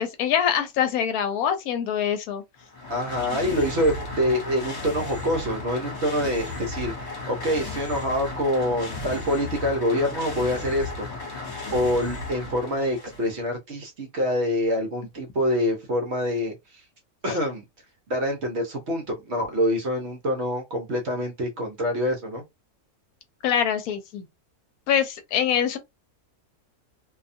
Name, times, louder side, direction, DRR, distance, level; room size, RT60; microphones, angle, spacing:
voice 1, 0.0-2.4 23.4-24.3 24.9-25.8, left 8 dB, 75° left, 1.0 m, -24 dB
sound 1, 2.6-13.4, left 2 dB, 50° left, 1.2 m, -35 dB
voice 2, 2.9-11.3 11.7-16.8 17.2-17.6 18.1-22.4, equal, 55° right, 0.9 m, -26 dB
2.6 x 2.3 x 2.5 m
omnidirectional pair, 1.6 m